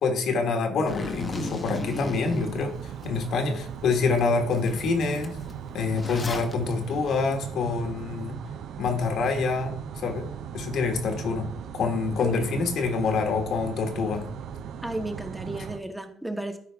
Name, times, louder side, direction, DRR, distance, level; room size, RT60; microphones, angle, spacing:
voice 1, 0.0-5.4 5.7-8.4 8.8-10.3 10.5-11.5 11.7-14.2, left 4 dB, 65° left, 5 dB, 1.5 m, -26 dB
Zipper (clothing), 0.9-3.1 3.6-3.7 4.2-4.3 4.5-6.5, left 3 dB, 30° left, 0.9 m, -36 dB
sound 1, 1.0-15.8, right 8 dB, 70° right, 0.6 m, -38 dB
voice 2, 14.8-16.6, right 1 dB, 5° right, 7 dB, 1.0 m, -33 dB
13.0 x 4.8 x 3.5 m, 0.63 s
cardioid pair, 100°, 0 cm